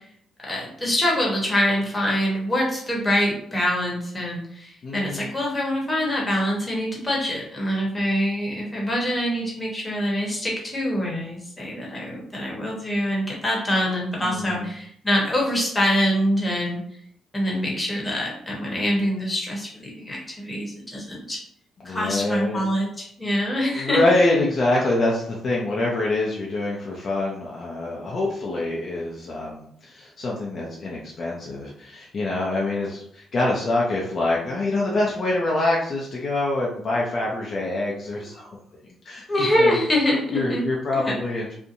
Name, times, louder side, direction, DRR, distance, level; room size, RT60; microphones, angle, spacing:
voice 1, 0.5-16.8 17.3-21.4 21.8-24.0 39.3-40.6 40.9-41.1, equal, 15° left, -3 dB, 1.0 m, -25 dB
voice 2, 4.8-5.4 14.2-14.7 21.8-22.6 23.7-38.6 38.8-39.8 40.3-41.5, left 2 dB, 50° left, -3 dB, 0.5 m, -25 dB
2.7 x 2.1 x 2.6 m, 0.66 s
cardioid pair, 90°, 0 cm